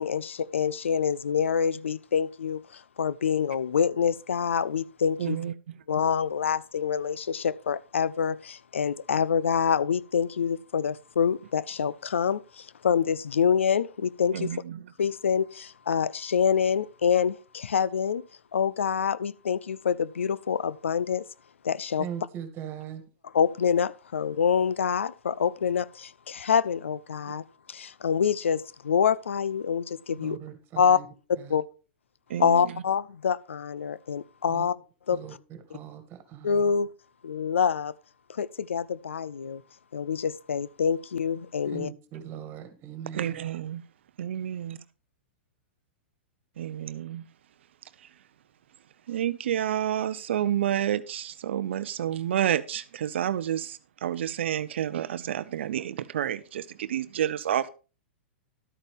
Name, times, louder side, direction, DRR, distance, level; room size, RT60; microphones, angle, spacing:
voice 1, 0.0-5.4 5.9-14.5 15.0-18.2 18.5-21.2 21.6-22.1 23.3-30.4 30.8-31.0 31.5-31.6 32.4-34.8 35.1-35.2 36.4-36.9 37.2-37.9 38.3-39.6 39.9-41.9, left 7 dB, 80° left, 0.5 m, -26 dB
voice 2, 5.2-5.5 14.3-14.6 32.3-32.7 43.1-43.8 44.2-44.8 46.6-47.2 49.1-57.7, right 10 dB, 70° right, 0.6 m, -29 dB
voice 3, 22.0-23.0 30.1-31.1 31.4-31.6 34.5-34.7 35.1-35.3 35.7-36.7 41.6-43.4, right 9 dB, 35° right, 2.1 m, -40 dB
12.0 x 8.9 x 3.5 m
hypercardioid pair, 110°, 7 cm